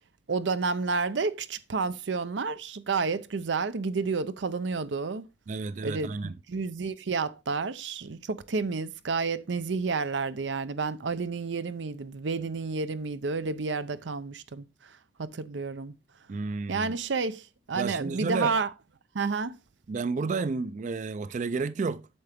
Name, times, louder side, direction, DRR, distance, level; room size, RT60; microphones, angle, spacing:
voice 1, 0.3-5.2 5.8-14.7 15.2-15.9 16.7-18.7 19.1-19.5, right 4 dB, 85° right, 0.6 m, -30 dB
voice 2, 5.5-6.4 16.3-17.0 17.7-18.6 19.9-22.1, right 4 dB, 45° right, 0.3 m, -31 dB
8.5 x 6.7 x 3.5 m
head